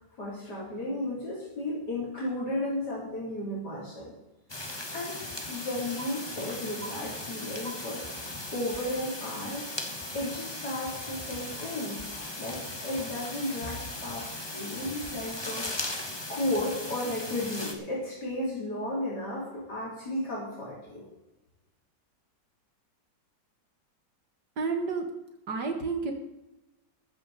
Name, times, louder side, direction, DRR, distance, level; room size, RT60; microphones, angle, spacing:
voice 1, 0.2-4.1 4.9-5.2 5.5-9.7 10.1-12.0 12.4-15.7 16.3-21.1, left 1 dB, 60° left, -5 dB, 4.1 m, -34 dB
sound 1, 4.5-17.7, left 2 dB, 15° left, 1.4 m, -38 dB
voice 2, 24.6-25.1 25.5-26.1, right 4 dB, 65° right, 4 dB, 2.1 m, -30 dB
14.5 x 12.5 x 4.2 m, 1.0 s
omnidirectional pair, 2.0 m